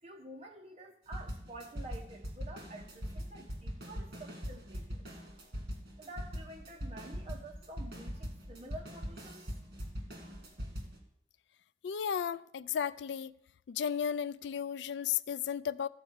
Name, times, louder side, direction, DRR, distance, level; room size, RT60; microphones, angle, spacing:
voice 1, 0.0-5.0 6.0-9.5, right 1 dB, 30° right, 1.3 m, -49 dB
sound 1, 1.1-11.0, equal, 55° right, 2.2 m, -41 dB
voice 2, 11.8-13.3 13.7-15.9, left 8 dB, 75° left, 0.3 m, -34 dB
13.5 x 4.6 x 7.1 m
head